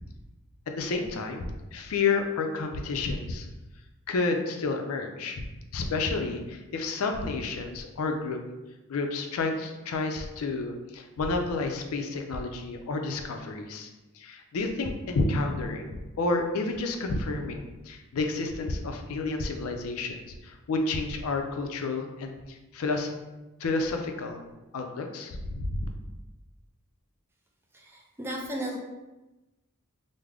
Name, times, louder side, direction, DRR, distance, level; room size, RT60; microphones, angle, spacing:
voice 1, 0.7-3.5 4.1-5.4 5.7-8.4 8.9-13.9 14.1-23.1 23.6-24.4 24.7-25.9, left 3 dB, 70° left, 4 dB, 0.4 m, -30 dB
voice 2, 27.7-28.8, equal, 10° right, -1 dB, 0.4 m, -35 dB
3.5 x 2.0 x 3.3 m, 1.1 s
head